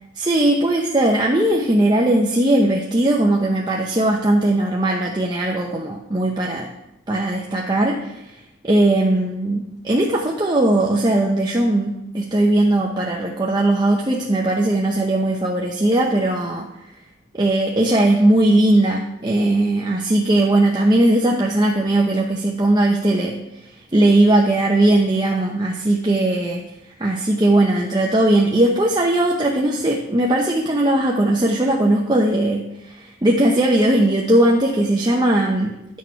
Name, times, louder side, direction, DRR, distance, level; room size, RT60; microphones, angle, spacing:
voice 1, 0.2-6.7 7.1-8.1 8.6-16.7 17.3-23.4 23.9-26.6 27.0-36.0, right 1 dB, 20° right, -1 dB, 0.8 m, -18 dB
11.0 x 6.4 x 4.6 m, 0.88 s
head